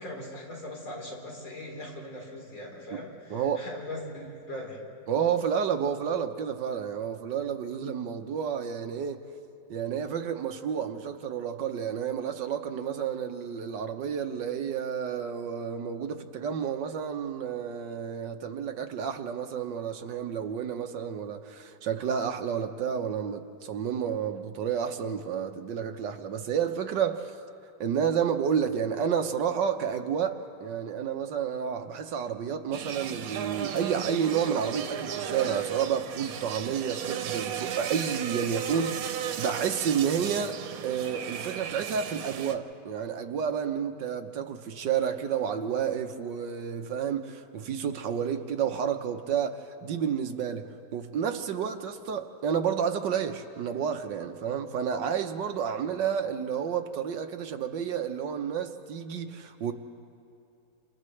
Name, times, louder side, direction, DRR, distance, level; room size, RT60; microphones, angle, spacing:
voice 1, 0.0-4.8 38.7-38.8 55.7-55.9, left 1 dB, 70° left, 4.8 m, -40 dB
voice 2, 3.3-3.7 5.1-9.3 9.7-27.3 27.8-39.1 39.4-59.7, right 7 dB, 65° right, 1.5 m, -30 dB
sound 1, 32.7-42.6, right 8 dB, 90° right, 1.8 m, -35 dB
29.5 x 28.0 x 3.2 m
omnidirectional pair, 2.3 m